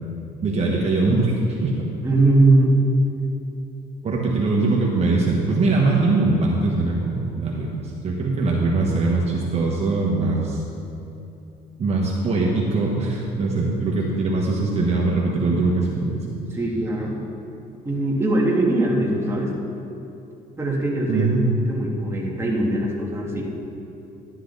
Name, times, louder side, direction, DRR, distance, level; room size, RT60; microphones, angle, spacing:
voice 1, 0.4-1.3 1.6-1.9 4.0-10.6 11.8-16.2 21.1-21.5, right 3 dB, 40° right, -3 dB, 1.3 m, -22 dB
voice 2, 2.0-2.8 16.5-17.2 17.8-19.5 20.6-21.3 21.7-23.5, right 2 dB, 15° right, -3 dB, 1.9 m, -21 dB
11.5 x 9.5 x 4.0 m, 2.8 s
cardioid pair, 110°, 17 cm